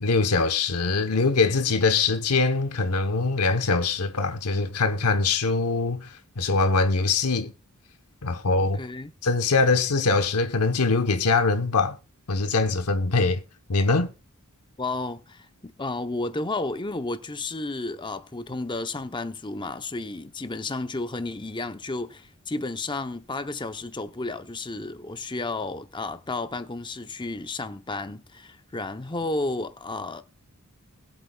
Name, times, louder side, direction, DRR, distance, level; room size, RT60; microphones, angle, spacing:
voice 1, 0.0-7.5 8.2-8.8 9.2-12.0 12.3-13.4 13.7-14.1, left 3 dB, 90° left, 0.9 m, -23 dB
voice 2, 8.6-9.1 14.8-30.2, left 2 dB, 20° left, 0.7 m, -32 dB
21.0 x 8.0 x 2.3 m
head